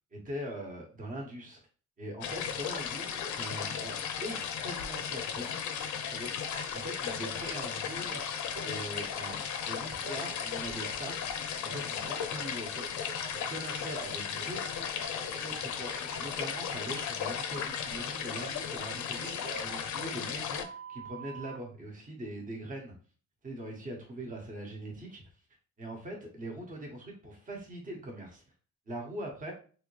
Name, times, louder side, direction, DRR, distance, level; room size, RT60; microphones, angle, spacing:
voice 1, 0.1-1.6 2.0-5.6 6.0-8.4 8.6-12.9 13.5-14.9 15.4-22.9 23.4-25.2 25.8-28.4 28.9-29.5, right 1 dB, 30° right, 0 dB, 1.1 m, -42 dB
sound 1, 2.2-20.6, left 7 dB, 80° left, 0.6 m, -36 dB
Telephone, 6.5-6.6 7.0-7.7 8.0-9.4 10.0-12.5 12.8-15.5 15.9-16.2 17.5-18.9 19.2-21.6, right 4 dB, 50° right, 0.7 m, -47 dB
3.5 x 2.5 x 3.1 m, 0.39 s
cardioid pair, 150°, 29 cm